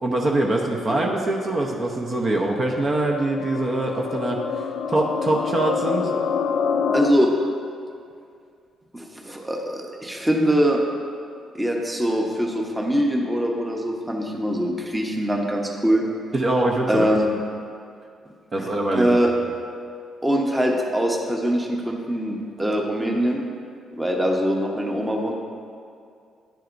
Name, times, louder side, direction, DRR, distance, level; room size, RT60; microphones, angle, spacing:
voice 1, 0.0-4.4 4.9-6.2 16.3-17.1 18.5-19.2, right 2 dB, 40° right, -1 dB, 0.8 m, -23 dB
sound 1, 2.0-7.1, left 6 dB, 70° left, 0.4 m, -27 dB
voice 2, 6.9-7.3 8.9-10.8 11.5-16.0 16.9-17.3 18.6-19.3 20.2-23.4 24.0-25.3, equal, 10° right, 0 dB, 1.0 m, -23 dB
10.5 x 7.4 x 2.6 m, 2.3 s
cardioid pair, 90°, 0 cm